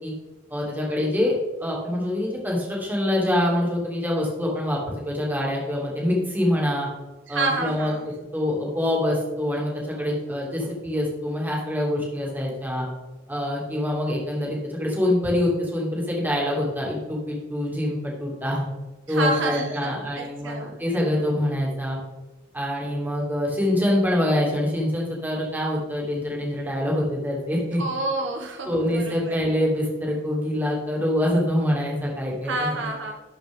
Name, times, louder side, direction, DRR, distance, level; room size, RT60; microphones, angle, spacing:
voice 1, 0.5-1.3 1.6-6.9 7.3-7.9 8.3-12.8 13.3-18.7 19.1-22.0 22.5-27.8 28.7-32.9, left 1 dB, 10° right, -3 dB, 2.4 m, -25 dB
voice 2, 7.3-8.1 19.1-20.8 27.8-29.4 32.4-33.1, right 2 dB, 65° right, 2 dB, 1.0 m, -29 dB
12.0 x 5.1 x 3.6 m, 1.1 s
head